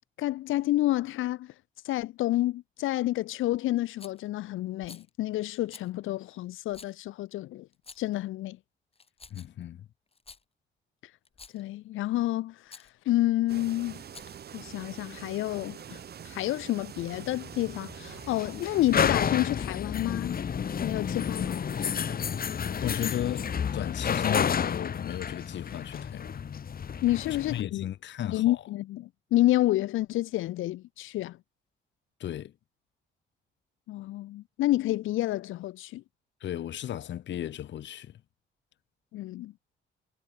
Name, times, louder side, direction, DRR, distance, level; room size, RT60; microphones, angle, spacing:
voice 1, 0.2-1.5 1.8-7.7 8.0-8.6 11.5-14.0 14.5-20.4 20.8-21.6 27.0-27.8 28.3-31.4 33.9-36.0 39.1-39.5, left 15 dB, 85° left, 1.3 m, -29 dB
Rattle, 4.0-4.3 4.8-5.1 5.7-5.9 6.7-7.0 7.7-8.2 8.9-9.6 10.1-10.4 11.2-11.7 12.7-12.9 14.0-14.5, left 4 dB, 30° left, 3.6 m, -50 dB
voice 2, 9.3-9.9 22.0-26.5 27.5-28.6 32.2-32.5 36.4-38.2, left 11 dB, 65° left, 1.6 m, -35 dB
sound 1, 13.5-19.0, right 8 dB, 55° right, 2.0 m, -45 dB
sound 2, 17.0-27.6, left 7 dB, 50° left, 2.9 m, -31 dB
cardioid pair, 90°, 20 cm